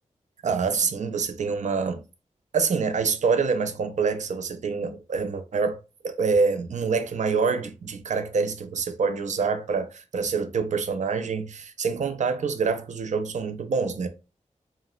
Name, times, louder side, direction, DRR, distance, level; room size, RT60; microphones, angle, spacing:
voice 1, 0.4-2.0 2.5-5.8 6.0-14.1, right 5 dB, 70° right, 0.4 m, -26 dB
2.8 x 2.0 x 2.2 m
cardioid pair, 60°, 13 cm